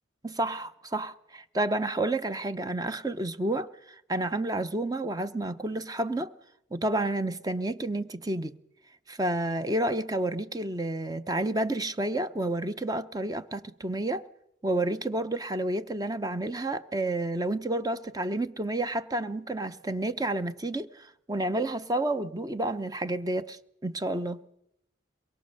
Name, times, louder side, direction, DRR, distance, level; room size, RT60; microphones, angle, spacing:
voice 1, 0.2-6.3 6.7-8.6 9.1-14.2 14.6-24.4, right 1 dB, 20° right, 0.8 m, -30 dB
23.5 x 21.5 x 6.6 m
head